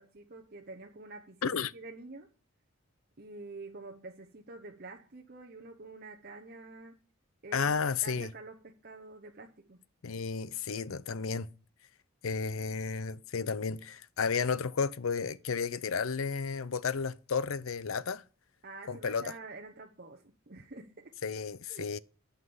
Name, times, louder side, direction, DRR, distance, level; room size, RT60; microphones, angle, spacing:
voice 1, 0.0-2.3 3.2-6.9 7.4-9.8 18.6-21.2 21.7-21.9, right 2 dB, 45° right, 0.9 m, -47 dB
voice 2, 7.5-8.3 10.0-11.5 12.2-18.2 18.9-19.3 21.2-22.0, left 5 dB, 70° left, 0.6 m, -32 dB
11.0 x 5.9 x 7.0 m
head